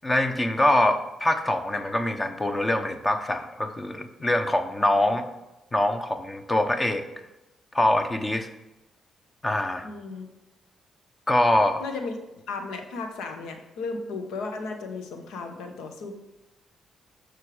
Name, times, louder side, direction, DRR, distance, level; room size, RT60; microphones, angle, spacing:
voice 1, 0.0-5.3 5.7-7.1 7.7-8.5 9.4-9.9 11.3-11.8, left 1 dB, 25° left, 7 dB, 1.0 m, -24 dB
voice 2, 9.8-10.3 11.8-12.1 12.5-16.1, left 3 dB, 85° left, 6 dB, 1.1 m, -35 dB
6.7 x 6.3 x 4.9 m, 0.97 s
supercardioid pair, 55°, 0 cm